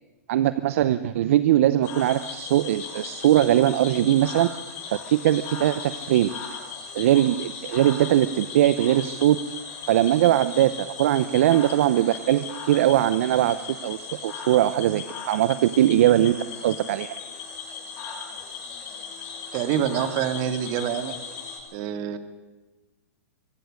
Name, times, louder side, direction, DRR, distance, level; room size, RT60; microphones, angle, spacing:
voice 1, 0.3-4.5 4.9-6.3 6.9-9.4 9.9-16.4 16.6-17.1, right 12 dB, 60° right, 14 dB, 0.7 m, -21 dB
Cricket / Frog, 1.8-21.6, left 5 dB, 40° left, 7.1 m, -37 dB
voice 2, 19.5-21.1 21.7-22.2, right 9 dB, 45° right, 9 dB, 2.0 m, -26 dB
24.0 x 16.5 x 6.5 m, 1.1 s
hypercardioid pair, 125°, 8 cm